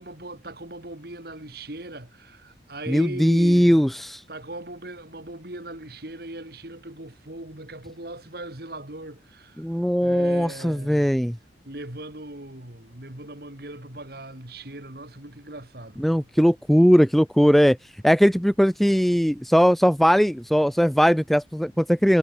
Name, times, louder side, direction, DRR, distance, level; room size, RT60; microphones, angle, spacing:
voice 1, 0.0-3.8 4.3-9.6 10.0-11.2 11.6-16.3, right 1 dB, 55° right, 3.0 m, -39 dB
voice 2, 2.9-4.2 9.6-11.4 16.0-17.8 18.0-22.2, equal, ahead, 0.5 m, -19 dB
head